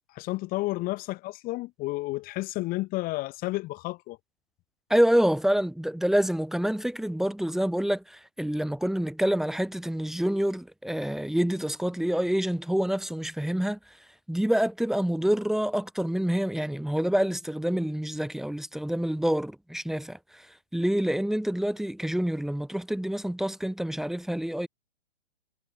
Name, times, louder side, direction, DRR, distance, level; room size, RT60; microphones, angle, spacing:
voice 1, 0.1-4.2, left 20 dB, 25° left, 3.2 m, -31 dB
voice 2, 4.9-13.8 14.3-24.7, equal, ahead, 3.6 m, -27 dB
hypercardioid pair, 130°, 33 cm